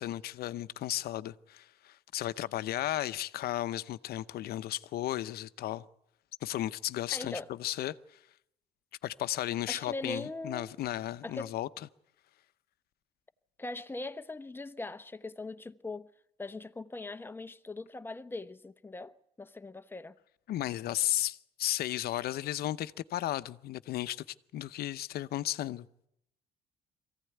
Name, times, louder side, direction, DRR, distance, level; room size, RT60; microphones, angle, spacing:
voice 1, 0.0-5.9 6.4-8.2 9.0-11.7 20.5-25.9, left 14 dB, 65° left, 0.8 m, -34 dB
voice 2, 7.1-7.5 9.7-10.8 11.2-11.6 13.6-16.1 16.4-20.2, left 2 dB, 10° left, 0.9 m, -41 dB
23.0 x 16.0 x 9.3 m
cardioid pair, 110°, 17 cm